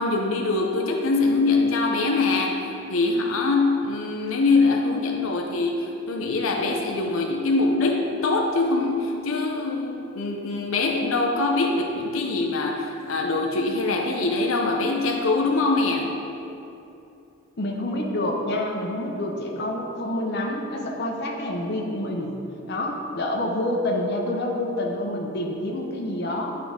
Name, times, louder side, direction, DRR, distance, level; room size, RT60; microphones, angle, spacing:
voice 1, 0.0-2.6 2.9-16.2, left 3 dB, 90° left, 1 dB, 0.6 m, -23 dB
voice 2, 17.6-22.4 22.7-26.5, left 1 dB, 55° left, 0 dB, 0.7 m, -27 dB
10.0 x 3.8 x 3.5 m, 2.8 s
head